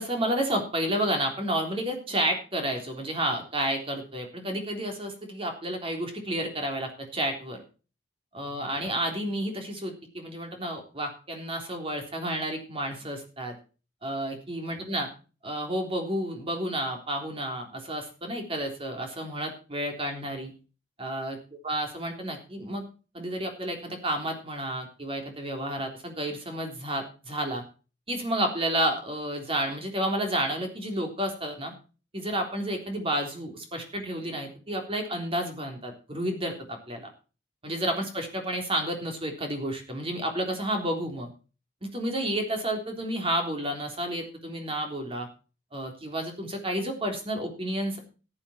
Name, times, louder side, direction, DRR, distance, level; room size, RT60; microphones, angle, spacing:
voice 1, 0.0-7.6 8.3-13.5 14.0-15.1 15.4-20.5 21.0-21.4 21.6-22.9 23.1-27.6 28.1-31.7 32.1-37.1 37.6-41.3 41.8-45.3 45.7-48.0, right 1 dB, 30° right, 3 dB, 3.6 m, -31 dB
14.0 x 10.0 x 4.5 m, 0.35 s
head